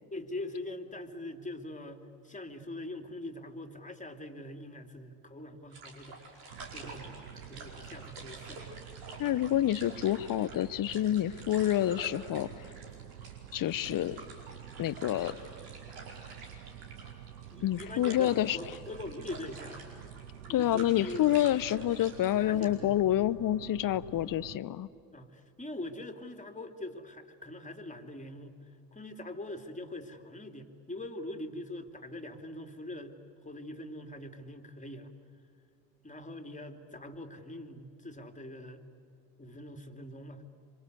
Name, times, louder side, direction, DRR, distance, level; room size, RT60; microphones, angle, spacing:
voice 1, 0.1-6.4 6.7-7.2 7.5-8.8 17.5-19.8 20.5-21.3 22.4-23.0 25.1-35.1 36.0-38.8 39.4-40.5, left 1 dB, 15° left, 6 dB, 2.9 m, -43 dB
sound 1, 5.7-22.7, right 3 dB, 70° right, 5.1 m, -49 dB
sound 2, 6.5-24.6, right 10 dB, 85° right, 0.7 m, -49 dB
voice 2, 9.2-12.7 13.5-14.2 14.8-15.4 17.6-18.6 20.5-24.9, left 12 dB, 40° left, 18 dB, 0.9 m, -28 dB
27.5 x 25.5 x 8.2 m, 2.5 s
hypercardioid pair, 55°, 49 cm